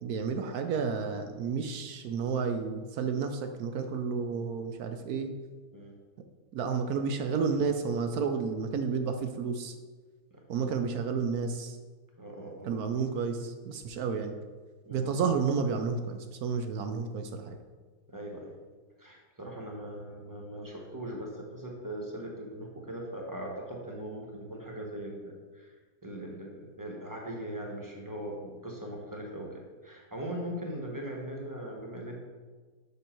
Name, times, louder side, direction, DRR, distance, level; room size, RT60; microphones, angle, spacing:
voice 1, 0.0-5.3 6.5-9.7 10.5-11.8 12.7-14.3 14.9-17.6, right 5 dB, 70° right, 6 dB, 1.1 m, -31 dB
voice 2, 10.3-10.7 12.2-12.9 14.8-15.1 18.1-18.5 19.0-25.8 26.0-32.2, right 1 dB, 15° right, -1 dB, 1.1 m, -40 dB
6.8 x 6.2 x 4.5 m, 1.4 s
omnidirectional pair, 1.7 m